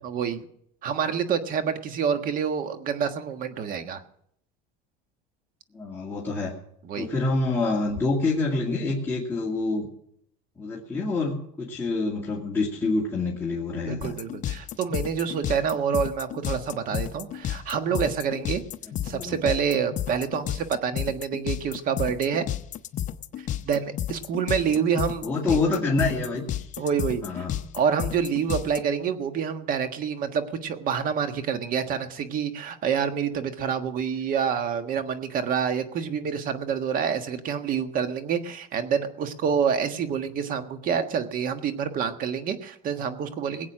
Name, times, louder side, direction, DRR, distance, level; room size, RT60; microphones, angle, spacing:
voice 1, 0.0-0.5 0.8-4.0 6.8-7.1 13.9-18.6 19.0-22.4 23.4-25.6 26.8-27.4 27.7-43.7, right 7 dB, 50° right, 8 dB, 1.5 m, -27 dB
voice 2, 5.7-6.5 6.9-9.9 10.6-14.2 18.8-19.3 25.2-26.8 27.2-27.6, left 3 dB, 10° left, -5 dB, 2.4 m, -27 dB
sound 1, 14.0-28.8, left 11 dB, 40° left, 0.7 m, -31 dB
20.0 x 8.3 x 6.1 m, 0.70 s
cardioid pair, 135°, 19 cm